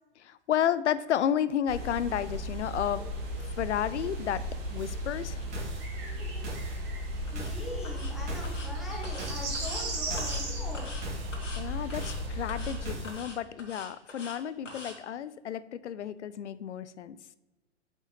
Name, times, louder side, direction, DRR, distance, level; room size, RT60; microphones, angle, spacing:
voice 1, 0.2-3.0 3.6-4.4 4.7-5.4 11.6-17.2, left 9 dB, 70° left, 15 dB, 0.6 m, -31 dB
sound 1, 1.7-12.9, equal, 50° right, 2.4 m, -35 dB
sound 2, 4.8-4.9 5.5-5.9 6.4-6.8 7.4-7.7 8.3-8.6 9.2-9.5 10.1-10.4 11.0-11.4 11.9-12.3 12.9-13.2, right 2 dB, 70° right, 2.4 m, -40 dB
voice 2, 6.2-6.7 7.1-11.0, left 1 dB, ahead, -2 dB, 0.3 m, -42 dB
sound 3, 7.3-7.5 7.8-8.1 8.4-8.7 9.0-9.8 10.2-10.4 10.7-11.0 11.3-11.6 11.9-12.2 12.5-12.8 13.0-14.4 14.7-14.9, left 2 dB, 90° left, 1.7 m, -44 dB
8.5 x 5.3 x 3.2 m, 1.1 s
figure-of-eight pair, 110°, 36 cm